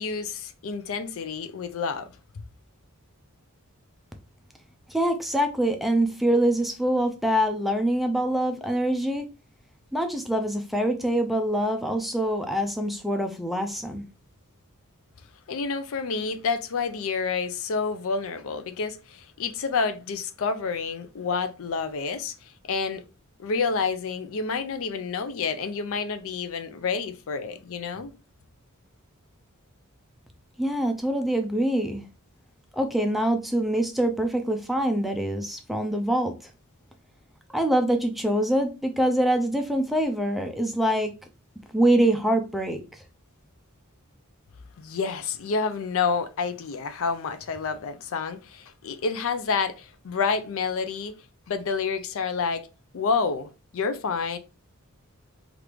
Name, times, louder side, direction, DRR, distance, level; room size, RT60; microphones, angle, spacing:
voice 1, 0.0-2.1 15.5-23.0 23.4-28.1 44.8-51.1 51.5-52.7 52.9-54.4, left 5 dB, 65° left, 0.4 m, -29 dB
voice 2, 4.9-9.2 9.9-14.1 30.6-32.0 32.8-36.3 37.5-41.1 41.7-42.8, right 1 dB, ahead, 0.4 m, -24 dB
3.0 x 2.5 x 3.4 m
head